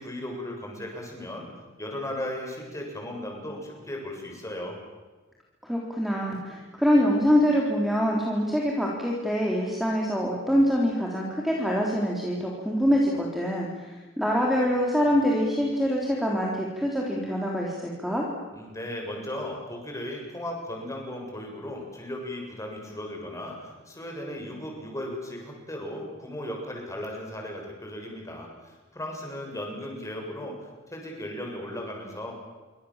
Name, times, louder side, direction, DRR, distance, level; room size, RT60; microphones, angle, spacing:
voice 1, 0.0-1.5 1.8-4.8 18.5-30.6 30.9-32.3, left 1 dB, 15° left, 1 dB, 7.2 m, -36 dB
voice 2, 5.6-18.2, equal, ahead, -2 dB, 3.6 m, -25 dB
28.0 x 24.5 x 7.5 m, 1.3 s
head